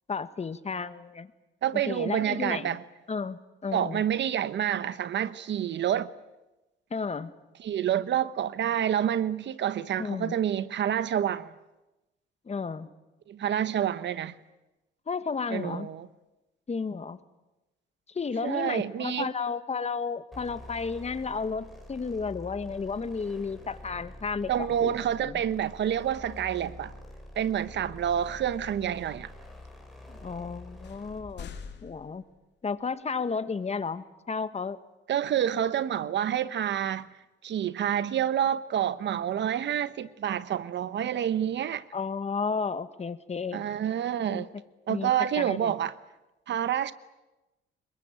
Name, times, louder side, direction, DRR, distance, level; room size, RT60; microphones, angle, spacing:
voice 1, 0.1-1.3 1.7-2.8 3.1-4.0 6.9-7.3 10.0-10.4 12.4-12.9 15.1-15.9 16.7-17.2 18.1-25.4 30.2-31.5 31.8-32.2 32.6-34.8 41.9-43.6 44.3-44.5 44.9-45.1 45.4-45.8, left 5 dB, 35° left, 1.5 m, -33 dB
voice 2, 1.6-2.8 3.7-6.1 7.6-11.5 13.3-14.3 15.5-16.1 18.4-19.3 24.5-26.9 27.4-29.3 35.1-37.1 37.4-41.8 43.5-44.5 44.9-45.9 46.5-46.9, right 10 dB, 65° right, 1.1 m, -28 dB
sound 1, 20.3-31.4, left 1 dB, ahead, 7.7 m, -46 dB
sound 2, 26.9-27.2 28.2-28.6 29.3-29.4 30.2-30.3 30.8-32.8, left 6 dB, 60° left, 3.4 m, -46 dB
25.5 x 21.5 x 9.0 m
cardioid pair, 90°, 20 cm